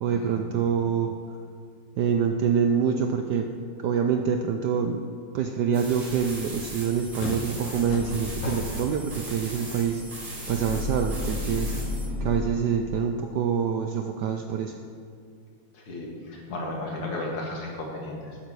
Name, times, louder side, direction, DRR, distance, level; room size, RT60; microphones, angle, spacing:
voice 1, 0.0-1.2 2.0-3.5 3.8-5.0 5.3-10.0 10.5-11.8 12.2-14.8, right 7 dB, 80° right, 5 dB, 0.9 m, -26 dB
sound 1, 5.7-12.1, right 1 dB, 50° right, 3.9 m, -40 dB
sound 2, 5.8-12.5, left 2 dB, 60° left, 0.9 m, -34 dB
voice 2, 15.7-18.4, left 2 dB, 90° left, -1 dB, 2.8 m, -34 dB
12.0 x 9.1 x 4.7 m, 2.3 s
omnidirectional pair, 2.4 m